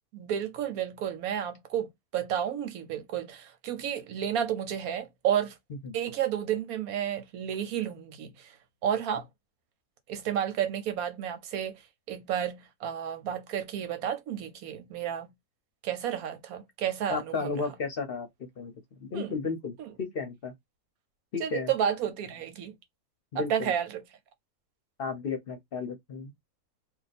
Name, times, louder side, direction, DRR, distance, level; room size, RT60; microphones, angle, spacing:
voice 1, 0.1-5.6 5.9-8.6 8.8-9.3 10.1-11.8 12.1-15.3 15.8-17.7 19.1-19.4 19.8-19.9 21.4-22.8 23.3-24.0, right 9 dB, 85° right, 1.2 m, -31 dB
voice 2, 17.1-18.3 18.6-18.7 19.0-20.5 21.3-21.7 23.3-23.7 25.0-26.3, left 5 dB, 50° left, 0.8 m, -33 dB
2.5 x 2.4 x 4.1 m
omnidirectional pair, 1.5 m